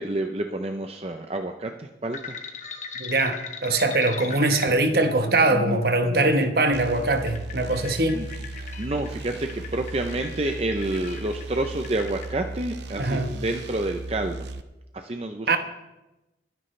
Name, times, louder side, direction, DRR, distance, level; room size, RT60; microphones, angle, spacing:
voice 1, 0.0-2.4 8.1-8.3 8.8-14.5 14.9-15.5, right 2 dB, 35° right, 0.6 m, -29 dB
sound 1, 2.1-12.3, left 3 dB, 40° left, 1.1 m, -38 dB
voice 2, 3.0-8.2 13.0-13.3 15.5-15.6, right 2 dB, 60° right, 1.2 m, -22 dB
sound 2, 6.7-14.6, right 2 dB, 80° right, 0.8 m, -37 dB
22.0 x 9.7 x 3.3 m
head